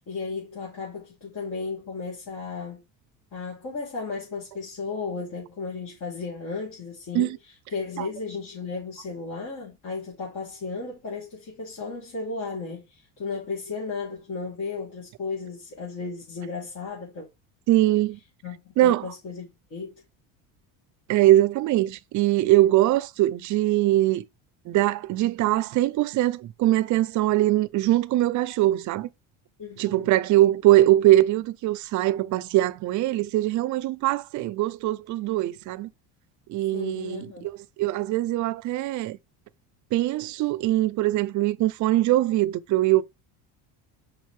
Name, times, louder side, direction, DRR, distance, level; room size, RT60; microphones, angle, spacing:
voice 1, 0.0-2.8 3.3-7.3 7.7-17.3 18.4-18.6 18.8-20.0 29.6-30.1 36.7-37.5, left 4 dB, 45° left, 3.3 m, -34 dB
voice 2, 17.7-18.2 18.8-19.1 21.1-24.2 24.7-29.1 29.8-35.9 36.5-39.2 39.9-43.0, right 15 dB, 45° right, 0.5 m, -22 dB
6.4 x 5.1 x 3.4 m
cardioid pair, 135°, 41 cm